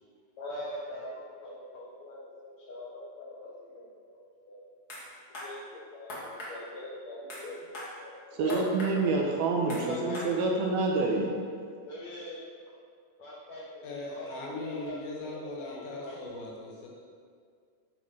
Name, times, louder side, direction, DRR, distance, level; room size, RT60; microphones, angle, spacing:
voice 1, 0.4-4.2 4.5-4.6 5.0-6.1 6.5-7.6 8.0-8.7 9.6-10.6 11.9-12.4 13.2-15.8 16.0-16.2, left 2 dB, 60° left, -5 dB, 2.0 m, -42 dB
sound 1, 4.9-5.0 5.3-5.5 6.1-6.5 7.3-7.4 7.7-7.9 8.5-8.9 9.7-9.8 10.1-10.3, left 1 dB, 35° left, 1.7 m, -40 dB
voice 2, 8.3-11.4, right 3 dB, 70° right, 0 dB, 2.8 m, -27 dB
voice 3, 13.8-16.9, left 2 dB, 85° left, -2 dB, 4.2 m, -39 dB
10.5 x 8.4 x 5.6 m, 2.1 s
omnidirectional pair, 5.0 m